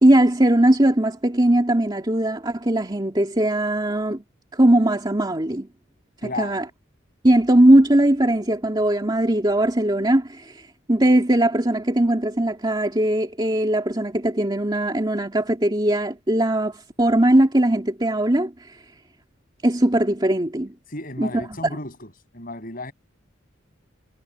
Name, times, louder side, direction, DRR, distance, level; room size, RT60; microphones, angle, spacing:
voice 1, 0.0-4.2 4.5-5.7 6.4-6.6 7.2-10.6 10.9-18.8 19.6-20.7 21.2-21.3, right 1 dB, 20° right, 2.6 m, -19 dB
voice 2, 6.2-6.7 20.9-22.9, left 2 dB, 45° left, 6.8 m, -34 dB
head